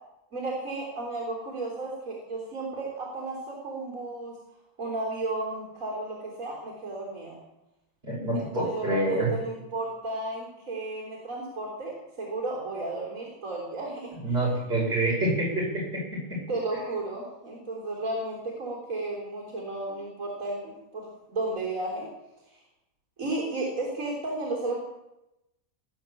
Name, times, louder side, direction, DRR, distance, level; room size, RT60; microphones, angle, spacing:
voice 1, 0.3-4.3 4.8-7.4 8.3-14.4 14.8-14.9 16.5-22.1 23.2-24.8, right 2 dB, 70° right, -3 dB, 4.1 m, -33 dB
voice 2, 8.0-9.3 14.2-16.4, right 2 dB, 50° right, -4 dB, 6.5 m, -27 dB
18.5 x 9.6 x 7.3 m, 0.91 s
omnidirectional pair, 1.4 m